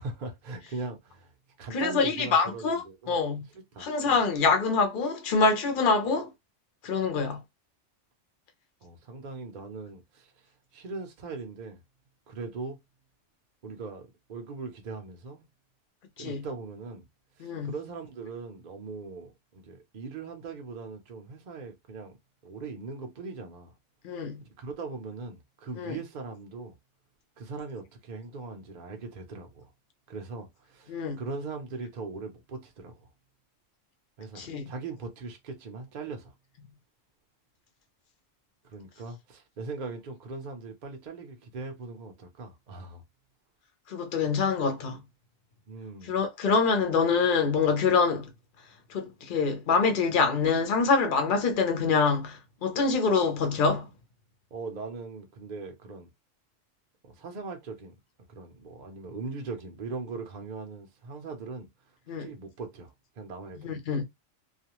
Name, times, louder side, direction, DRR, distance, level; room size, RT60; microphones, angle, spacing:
voice 1, 0.0-3.2 3.5-4.2 8.8-11.8 12.3-12.8 13.6-15.4 16.2-17.1 17.4-22.2 22.4-23.7 24.4-26.8 27.4-29.7 30.1-33.1 34.2-36.3 38.6-43.0 45.7-46.2 54.5-56.1 57.0-57.9 58.3-61.7 62.1-63.8, right 4 dB, 45° right, 0.6 m, -40 dB
voice 2, 1.7-3.4 3.8-6.3 6.8-7.4 16.2-16.4 17.4-17.7 24.0-24.4 25.8-26.0 30.9-31.2 34.4-34.6 43.9-45.0 46.1-48.3 48.9-53.9 62.1-62.3 63.6-64.0, left 4 dB, 50° left, 0.8 m, -25 dB
2.4 x 2.3 x 2.9 m
omnidirectional pair, 1.3 m